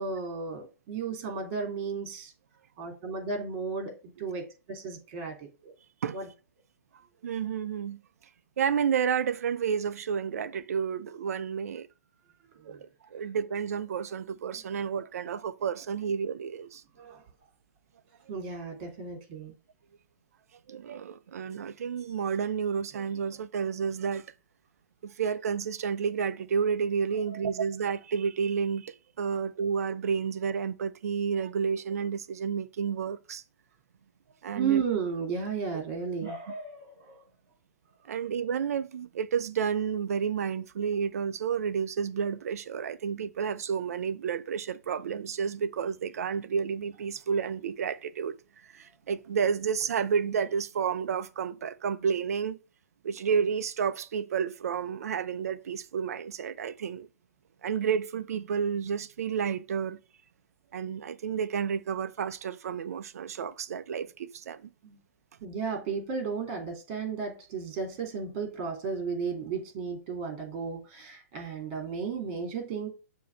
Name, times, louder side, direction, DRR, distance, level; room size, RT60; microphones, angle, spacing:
voice 1, 0.0-2.3 2.8-5.7 6.1-6.3 12.7-12.8 17.0-17.2 18.3-19.5 27.3-27.6 29.3-29.4 34.5-37.2 64.8-65.0 65.4-72.9, right 5 dB, 40° right, 3.1 m, -34 dB
voice 2, 7.2-8.0 8.6-11.9 12.6-16.8 20.7-24.3 25.0-33.4 34.4-34.8 36.2-36.3 38.0-48.4 48.6-52.6 53.0-57.1 57.6-60.0 60.7-64.7, right 7 dB, 65° right, 0.7 m, -30 dB
7.0 x 3.1 x 6.0 m
hypercardioid pair, 125°, 9 cm